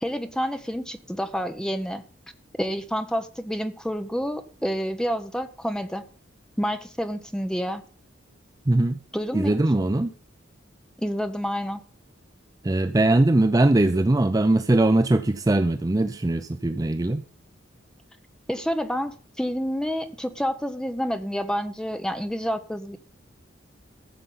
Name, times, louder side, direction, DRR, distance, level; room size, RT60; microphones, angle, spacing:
voice 1, 0.0-2.0 2.6-6.0 6.6-7.8 9.1-9.6 11.0-11.8 18.5-23.0, equal, 5° left, 0.9 m, -28 dB
voice 2, 8.7-9.0 9.3-10.1 12.6-17.2, right 2 dB, 20° right, 0.5 m, -21 dB
14.5 x 6.8 x 5.6 m
head